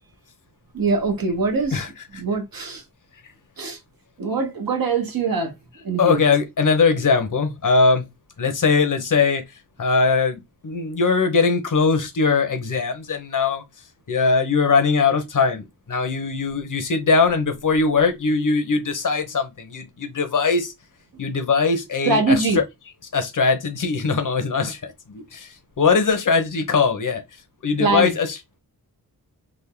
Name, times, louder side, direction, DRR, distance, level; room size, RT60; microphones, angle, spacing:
voice 1, 0.7-1.8 2.1-2.8 3.6-3.8 4.2-5.5 5.8-6.2 22.0-22.6 27.8-28.1, right 4 dB, 65° right, 1.1 m, -23 dB
voice 2, 1.7-2.2 6.0-8.1 8.4-9.4 9.8-13.6 14.1-20.7 21.2-22.6 23.1-27.2 27.6-28.6, left 4 dB, 55° left, 0.9 m, -21 dB
3.6 x 2.0 x 3.7 m
wide cardioid pair, 65°, 38 cm